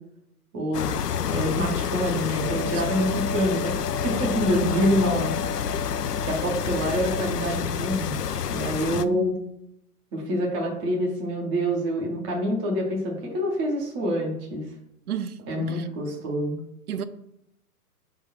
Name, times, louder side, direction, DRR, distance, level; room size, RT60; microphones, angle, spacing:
voice 1, 0.5-5.3 6.2-8.2 8.5-9.3 10.1-14.6 15.5-16.6, equal, 10° right, 0.4 m, -26 dB
sound 1, 0.7-9.0, left 7 dB, 90° left, 0.5 m, -28 dB
voice 2, 2.6-3.2 4.5-5.0 8.9-9.2 15.1-15.9 16.9-17.0, right 9 dB, 70° right, 0.6 m, -33 dB
5.1 x 3.7 x 5.8 m
hypercardioid pair, 125°, 46 cm